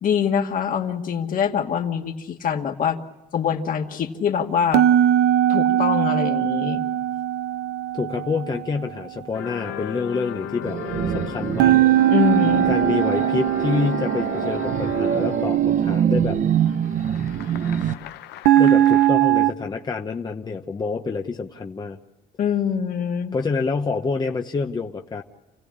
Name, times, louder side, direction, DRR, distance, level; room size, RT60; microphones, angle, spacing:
voice 1, 0.0-3.0 3.3-4.8 5.5-6.8 12.1-12.8 22.4-23.4, left 7 dB, 55° left, 3 dB, 2.1 m, -24 dB
sound 1, 4.7-8.9 11.6-15.7 18.5-19.5, right 12 dB, 85° right, 0.8 m, -20 dB
voice 2, 7.9-10.8 11.1-11.8 12.7-16.4 18.6-22.0 23.3-25.2, left 4 dB, 25° left, 4 dB, 1.0 m, -27 dB
sound 2, 9.3-15.7 16.6-19.1, left 12 dB, 85° left, 0.9 m, -36 dB
sound 3, 10.6-17.9, right 9 dB, 50° right, 0.9 m, -24 dB
29.5 x 16.0 x 8.7 m, 1.1 s
cardioid pair, 110°, 17 cm